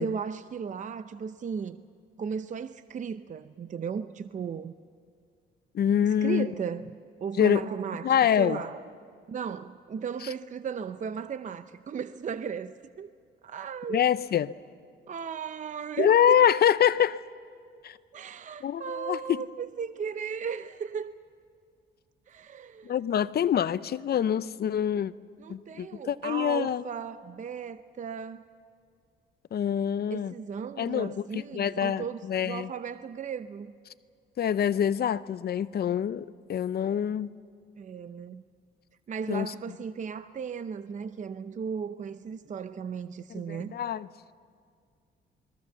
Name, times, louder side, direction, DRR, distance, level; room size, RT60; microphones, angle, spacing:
voice 1, 0.0-1.8 2.2-4.7 6.2-6.9 7.2-8.9 9.3-13.1 13.4-14.0 15.1-16.4 18.1-21.1 22.3-22.9 25.4-28.5 30.1-33.7 37.8-38.4 39.1-43.8, right 6 dB, 40° right, 0.6 m, -36 dB
voice 2, 5.7-6.5 7.4-7.7 8.0-8.6 10.2-10.3 13.9-14.5 16.0-17.2 17.8-18.0 18.6-19.5 22.8-25.1 25.5-26.8 29.5-30.3 30.8-32.7 34.4-37.3 39.3-39.5 43.3-44.1, left 9 dB, 55° left, 0.6 m, -25 dB
28.0 x 21.5 x 7.0 m
cardioid pair, 90°, 20 cm